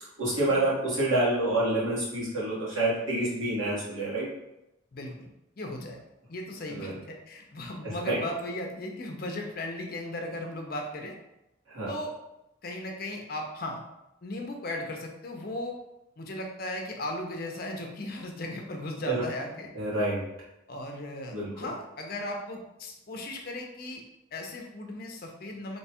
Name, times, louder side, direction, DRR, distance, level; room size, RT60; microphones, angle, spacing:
voice 1, 0.2-4.3 6.7-7.0 7.8-8.2 11.7-11.9 19.0-19.1 19.7-20.3 21.3-21.7, right 1 dB, 85° right, -7 dB, 1.5 m, -28 dB
voice 2, 4.9-5.3 5.6-6.0 6.3-11.1 11.9-12.1 12.6-13.8 14.2-15.8 16.2-19.7 20.7-24.0 24.3-25.8, left 1 dB, 45° left, 2 dB, 0.5 m, -36 dB
3.0 x 2.3 x 4.2 m, 0.89 s
head